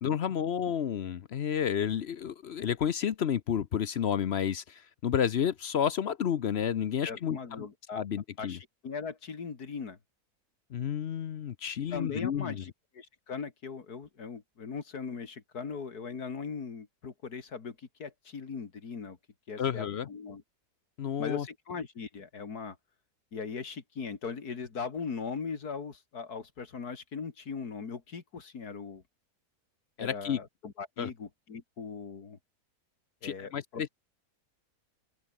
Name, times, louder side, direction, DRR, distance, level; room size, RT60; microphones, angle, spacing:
voice 1, 0.0-7.7 7.9-8.6 10.7-12.6 19.6-20.1 21.0-21.5 30.0-30.4 31.0-31.1 33.2-33.9, left 8 dB, 55° left, 0.8 m, -31 dB
voice 2, 7.0-8.0 8.4-10.0 11.9-19.2 19.5-20.4 21.2-22.8 23.3-29.0 30.0-32.4 33.2-33.9, left 5 dB, 80° left, 2.8 m, -39 dB
open air
omnidirectional pair, 1.6 m